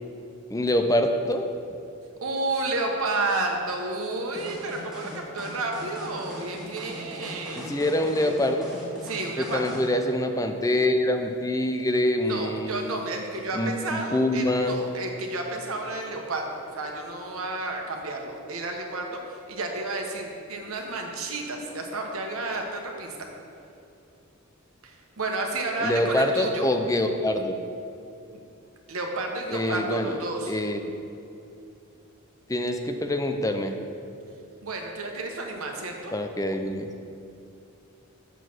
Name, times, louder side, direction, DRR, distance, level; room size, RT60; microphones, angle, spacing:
voice 1, 0.5-1.5 7.6-8.7 9.4-12.9 13.5-14.8 25.8-27.5 29.5-30.2 30.5-30.8 32.5-33.8 36.1-36.9, left 1 dB, 15° left, 5 dB, 0.5 m, -25 dB
voice 2, 2.2-7.8 9.0-9.7 12.2-23.2 24.8-26.7 28.3-28.4 28.9-30.6 34.6-36.2, right 2 dB, 85° right, 2 dB, 1.2 m, -31 dB
sound 1, 4.3-9.9, equal, ahead, 1.9 m, -41 dB
7.0 x 6.4 x 6.1 m, 2.7 s
head